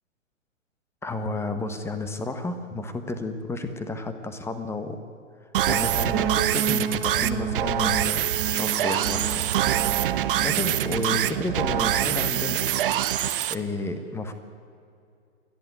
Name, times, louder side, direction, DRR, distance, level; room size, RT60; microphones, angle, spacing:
voice 1, 1.0-5.0 5.7-9.4 10.4-12.6 13.5-14.3, left 2 dB, 5° left, 9 dB, 1.3 m, -31 dB
sound 1, 5.5-13.5, right 11 dB, 45° right, 0.9 m, -25 dB
sound 2, 6.1-12.0, right 8 dB, 20° right, 1.2 m, -32 dB
28.5 x 11.0 x 9.6 m, 2.4 s
figure-of-eight pair, 120°, 39 cm